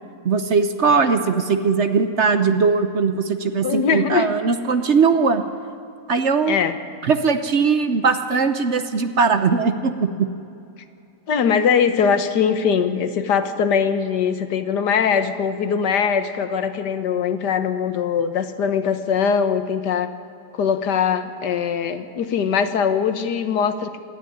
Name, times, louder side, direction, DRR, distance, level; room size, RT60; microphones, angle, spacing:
voice 1, 0.2-5.4 6.1-6.6 7.0-10.3, right 5 dB, 50° right, 9 dB, 1.1 m, -19 dB
voice 2, 3.6-4.3 6.4-6.8 11.3-20.2 20.5-24.0, left 7 dB, 85° left, 10 dB, 1.7 m, -21 dB
27.5 x 10.5 x 9.9 m, 2.6 s
omnidirectional pair, 1.7 m